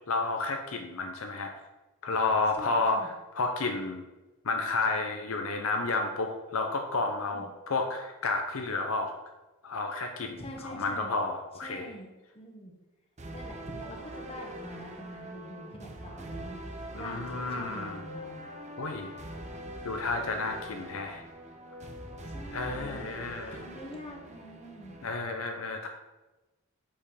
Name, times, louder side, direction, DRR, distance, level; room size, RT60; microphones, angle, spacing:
voice 1, 0.1-1.5 2.0-4.0 4.4-9.1 9.6-11.9 16.9-18.1 18.8-19.1 19.8-21.2 22.5-23.5 25.0-25.9, left 3 dB, 70° left, 4 dB, 0.8 m, -31 dB
voice 2, 2.6-3.1 7.3-7.5 10.4-11.1 11.6-12.7 13.3-18.4 22.2-25.0, equal, 25° left, 1 dB, 1.3 m, -45 dB
sound 1, 13.2-25.1, right 1 dB, 30° right, 0.7 m, -43 dB
6.8 x 5.6 x 5.0 m, 1.1 s
head